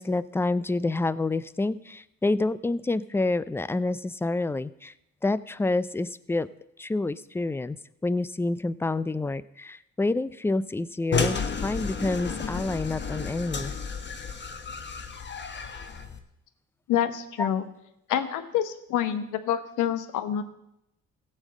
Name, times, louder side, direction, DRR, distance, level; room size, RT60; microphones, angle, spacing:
voice 1, 0.0-4.9 5.2-6.5 6.8-7.8 8.0-13.7 17.4-17.5, left 2 dB, 10° left, 17 dB, 0.4 m, -28 dB
sound 1, 11.1-16.2, left 5 dB, 35° left, 1.3 m, -32 dB
voice 2, 16.9-17.6 18.1-20.4, left 10 dB, 90° left, 11 dB, 1.1 m, -27 dB
15.5 x 5.4 x 7.4 m, 0.83 s
cardioid pair, 90°, 30 cm